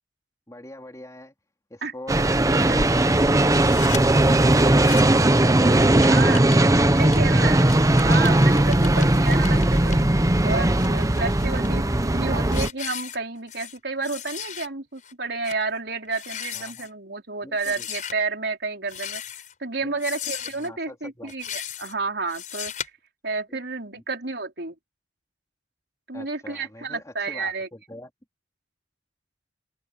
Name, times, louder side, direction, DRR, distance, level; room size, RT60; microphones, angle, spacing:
voice 1, 0.5-1.3 1.7-5.2 16.5-16.9 17.4-17.9 19.8-20.0 20.6-21.3 23.5-23.6 23.9-24.0 26.1-28.1, left 1 dB, 20° left, 3.9 m, -43 dB
sound 1, 2.1-12.7, right 1 dB, 20° right, 0.9 m, -18 dB
sound 2, 3.5-4.0 4.6-5.2 5.5-9.9 10.5-11.7 12.1-12.3 12.5-13.8 14.0-14.7 15.0-15.1 15.4-15.6 16.0-16.9 17.6-18.1 18.8-19.5 20.0-20.7 21.3-21.9 22.3-22.9, left 9 dB, 45° left, 5.1 m, -36 dB
voice 2, 6.0-6.4 6.8-7.7 8.0-10.1 10.4-19.2 19.6-22.7 23.2-24.8 26.1-27.7, right 4 dB, 70° right, 4.7 m, -31 dB
open air
head